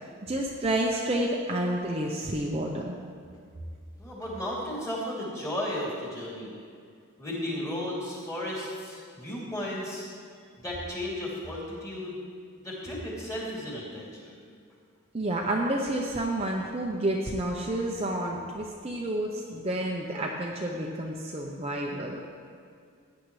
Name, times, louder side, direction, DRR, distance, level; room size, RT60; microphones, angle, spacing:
voice 1, 0.2-3.0 15.1-22.2, right 1 dB, 30° right, -1 dB, 0.7 m, -30 dB
voice 2, 4.0-6.6 7.2-10.1 10.6-12.2 12.6-14.3, left 1 dB, 15° left, -6 dB, 2.9 m, -34 dB
16.5 x 9.5 x 3.2 m, 2.3 s
head